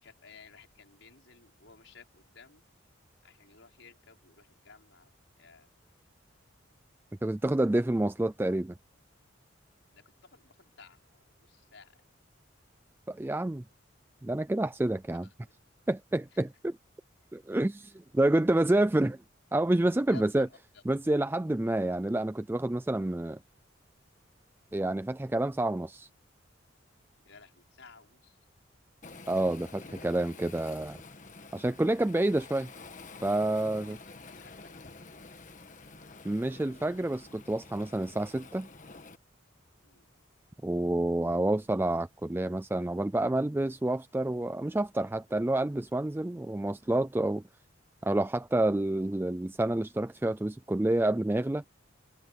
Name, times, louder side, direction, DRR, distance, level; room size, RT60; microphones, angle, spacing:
voice 1, 0.0-2.6 3.2-5.7 9.9-10.0 10.3-11.0 11.4-12.0 15.2-15.3 20.1-20.8 27.3-28.4 34.3-34.7 39.8-40.1, left 4 dB, 70° left, 5.5 m, -55 dB
voice 2, 7.2-8.7 13.1-13.6 14.2-15.3 15.9-16.8 17.3-19.2 19.5-20.5 20.9-23.4 24.7-26.1 29.3-31.0 31.5-32.7 33.2-34.0 36.2-38.7 40.6-47.4 48.0-51.6, right 1 dB, 10° right, 0.3 m, -28 dB
Waves surf, 29.0-39.2, left 3 dB, 40° left, 1.4 m, -49 dB
head